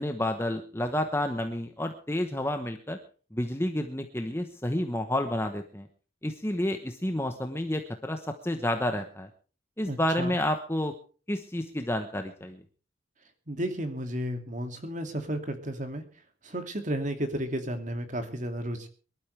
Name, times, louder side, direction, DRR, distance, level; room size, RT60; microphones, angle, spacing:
voice 1, 0.0-3.0 3.3-5.9 6.2-9.3 9.8-11.0 11.3-12.6, left 1 dB, 15° left, 6 dB, 1.0 m, -30 dB
voice 2, 9.9-10.4 13.5-16.0 16.4-18.9, right 1 dB, 40° right, 6 dB, 2.5 m, -33 dB
23.5 x 12.5 x 3.4 m, 0.38 s
head